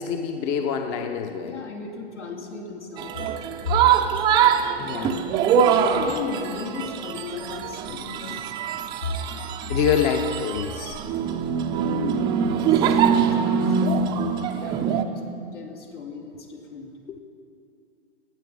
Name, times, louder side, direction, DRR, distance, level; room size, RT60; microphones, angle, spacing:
voice 1, 0.0-1.6 4.8-5.2 8.0-8.4 9.7-11.0 11.5-11.6 17.1-17.2, left 7 dB, 30° left, 6 dB, 0.8 m, -26 dB
voice 2, 1.4-3.8 4.8-8.5 9.0-9.1 11.8-14.0 14.5-15.2 15.5-16.9, left 4 dB, 80° left, 1 dB, 2.7 m, -36 dB
sound 1, 3.0-15.0, right 7 dB, 15° right, 0.4 m, -23 dB
18.0 x 8.4 x 5.4 m, 2.4 s
hypercardioid pair, 125°, 35 cm